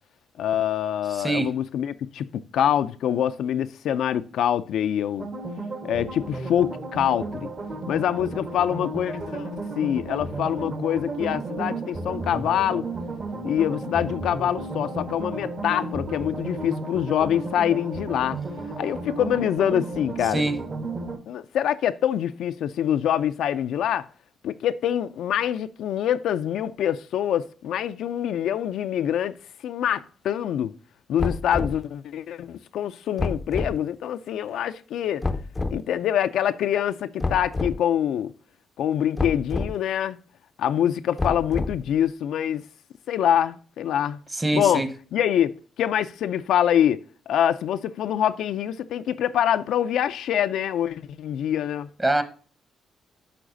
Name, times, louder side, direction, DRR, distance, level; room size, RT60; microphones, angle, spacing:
voice 1, 0.4-5.3 5.8-7.5 7.9-12.9 13.4-18.4 18.8-20.4 21.3-24.1 24.4-29.4 29.6-30.7 31.1-35.2 35.7-38.3 38.8-40.2 40.6-42.6 43.1-44.2 44.5-44.8 45.1-51.9, left 10 dB, 75° left, 0.4 m, -25 dB
voice 2, 1.1-1.5 20.3-20.6 44.3-44.9 52.0-52.2, right 2 dB, 20° right, 1.0 m, -24 dB
sound 1, 5.2-21.2, right 2 dB, 45° right, 1.3 m, -33 dB
sound 2, 31.2-31.8 33.2-33.8 35.2-35.8 37.2-37.8 39.2-39.7 41.2-41.9, left 3 dB, 20° left, 0.5 m, -28 dB
11.0 x 3.9 x 2.6 m
cardioid pair, 90°, 0 cm